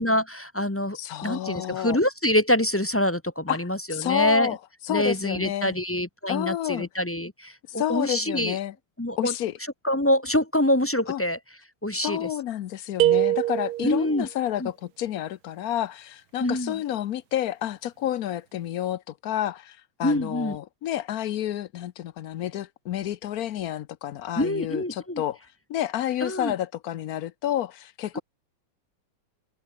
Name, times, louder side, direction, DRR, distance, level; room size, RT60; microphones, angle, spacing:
voice 1, 0.0-4.6 4.9-8.6 9.0-9.3 9.8-11.4 11.8-12.3 13.8-14.3 14.6-14.7 16.4-16.8 20.0-20.6 24.4-25.2 26.2-26.5 28.1-28.2, left 1 dB, 10° left, 0.7 m, -25 dB
voice 2, 0.9-2.0 3.5-4.6 4.8-5.8 6.3-6.9 7.8-8.7 9.2-9.6 11.1-11.2 11.9-25.4 25.7-28.2, left 12 dB, 65° left, 1.0 m, -30 dB
sound 1, 13.0-14.2, right 15 dB, 75° right, 0.9 m, -23 dB
omnidirectional pair, 2.1 m